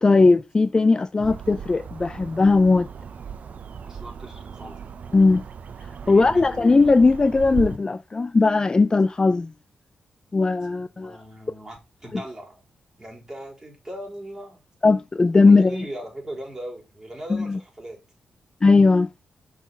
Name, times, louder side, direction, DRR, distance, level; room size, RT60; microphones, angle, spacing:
voice 1, 0.0-2.9 5.1-5.4 6.1-9.5 10.3-11.2 12.1-12.2 14.8-15.8 17.3-17.6 18.6-19.1, left 3 dB, 30° left, 0.4 m, -18 dB
sound 1, 1.2-7.8, right 6 dB, 65° right, 0.6 m, -37 dB
voice 2, 3.8-4.9 6.0-6.5 10.9-12.6 13.0-14.6 15.4-18.0, right 1 dB, 20° right, 3.9 m, -39 dB
6.0 x 4.2 x 5.5 m
cardioid pair, 75°, 3 cm